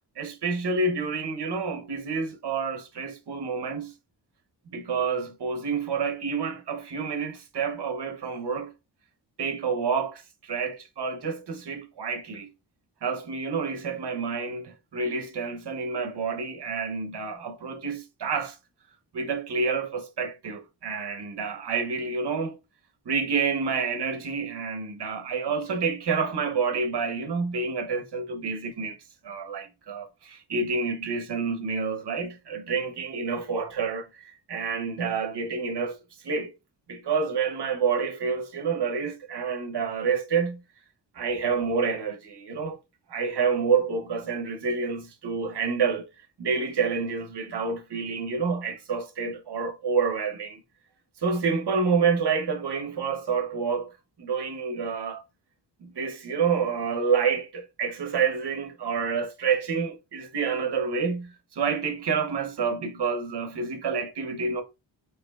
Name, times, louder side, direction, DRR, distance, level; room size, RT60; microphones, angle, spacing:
voice 1, 0.2-3.9 4.7-8.7 9.4-12.5 13.0-18.6 19.1-22.6 23.1-29.0 29.2-36.0 36.2-36.5 36.9-40.6 41.1-42.8 43.1-46.1 46.4-50.6 51.2-53.9 54.2-55.2 55.8-64.6, right 5 dB, 65° right, 0.9 m, -28 dB
4.4 x 2.7 x 2.3 m
wide cardioid pair, 80°, 43 cm